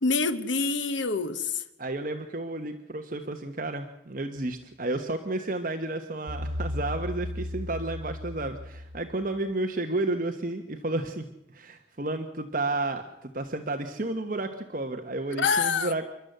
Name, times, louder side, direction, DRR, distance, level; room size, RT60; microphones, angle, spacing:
voice 1, 0.0-1.6 15.4-15.9, left 4 dB, 80° left, 1.2 m, -26 dB
voice 2, 1.8-16.1, right 2 dB, 45° right, 1.2 m, -32 dB
sound 1, 6.3-9.4, left 1 dB, 90° right, 1.8 m, -35 dB
29.5 x 11.5 x 8.0 m
head